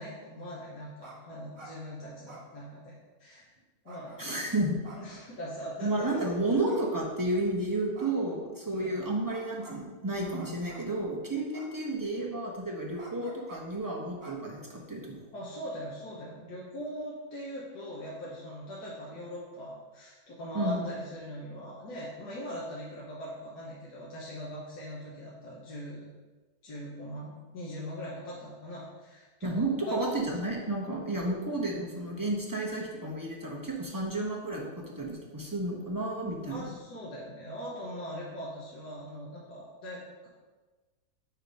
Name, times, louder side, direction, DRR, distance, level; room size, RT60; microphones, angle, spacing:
voice 1, 0.0-2.9 3.2-3.5 3.8-4.2 4.9-6.2 8.7-8.9 15.3-26.0 26.6-30.0 36.4-40.3, equal, 85° left, -7 dB, 1.7 m, -41 dB
sound 1, 1.0-1.2 1.4-1.7 2.2-3.1 3.8-4.4 4.8-5.5 6.1-6.3 6.6-7.2 7.9-8.6 9.3-9.8 10.3-11.0 11.5-12.1 13.0-13.6 14.2-14.9, right 2 dB, 45° right, 1.3 m, -50 dB
voice 2, 4.2-4.8 5.8-15.2 20.5-20.9 29.4-36.8, right 2 dB, 30° right, -3 dB, 0.4 m, -32 dB
4.7 x 4.4 x 5.2 m, 1.3 s
omnidirectional pair, 1.7 m